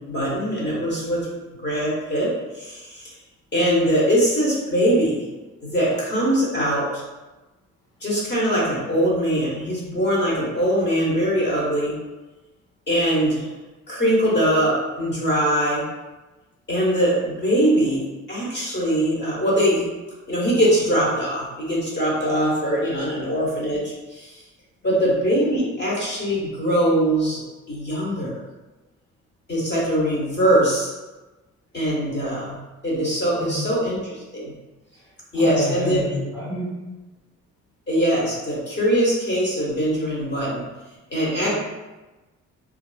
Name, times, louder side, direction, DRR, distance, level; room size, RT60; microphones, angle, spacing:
voice 1, 0.1-1.3 1.6-2.3 2.5-3.1 3.5-5.2 5.6-7.0 8.0-11.9 12.9-13.5 13.9-15.8 16.7-18.0 18.3-19.8 20.3-24.4 24.8-27.4 27.7-28.4 29.5-30.9 31.7-32.6 32.8-34.5 35.3-36.0 37.9-40.6 41.1-41.5, equal, 35° left, -6 dB, 1.0 m, -22 dB
voice 2, 35.3-36.7 41.4-41.5, left 2 dB, 15° left, -10 dB, 0.7 m, -29 dB
2.4 x 2.3 x 2.2 m, 1.1 s
cardioid pair, 90°, 30 cm